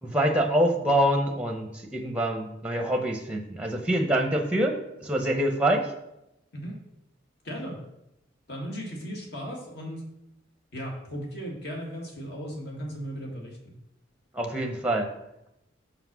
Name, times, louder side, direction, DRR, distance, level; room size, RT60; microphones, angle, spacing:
voice 1, 0.0-5.9 14.3-15.1, right 1 dB, 5° right, 4 dB, 0.7 m, -25 dB
voice 2, 7.4-7.8 8.5-10.1 10.7-13.7, equal, 55° left, -1 dB, 1.9 m, -36 dB
5.8 x 5.0 x 6.1 m, 0.88 s
head